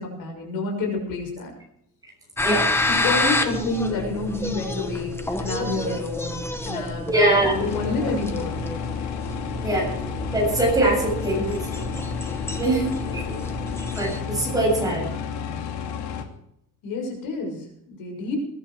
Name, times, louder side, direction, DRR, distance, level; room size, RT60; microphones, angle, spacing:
voice 1, 0.0-1.5 2.9-6.3 6.6-8.6 16.8-18.4, left 3 dB, 60° left, 2 dB, 6.4 m, -29 dB
sound 1, 2.4-14.2, left 2 dB, 5° left, 1.2 m, -29 dB
voice 2, 2.4-2.9 7.1-7.8 9.6-9.9 10.3-11.8 12.6-13.3 14.0-15.1, right 1 dB, 10° right, -2 dB, 7.6 m, -23 dB
sound 2, 7.4-16.2, left 7 dB, 80° left, 2.7 m, -31 dB
21.5 x 11.5 x 4.9 m, 0.73 s
cardioid pair, 170°, 39 cm